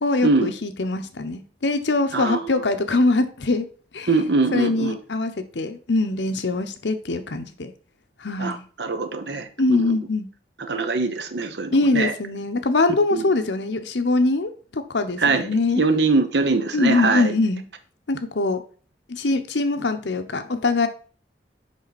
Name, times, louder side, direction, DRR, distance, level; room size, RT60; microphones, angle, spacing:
voice 1, 0.0-3.7 3.9-4.1 4.5-7.7 8.2-8.6 9.6-10.3 11.7-15.8 16.7-17.6 18.1-18.6 19.1-20.9, left 2 dB, 80° left, 9 dB, 0.9 m, -23 dB
voice 2, 4.1-5.0 8.4-10.0 10.7-12.1 13.1-13.2 15.2-15.5 15.8-17.3, right 3 dB, 70° right, 8 dB, 1.0 m, -22 dB
7.3 x 5.3 x 4.1 m, 0.40 s
head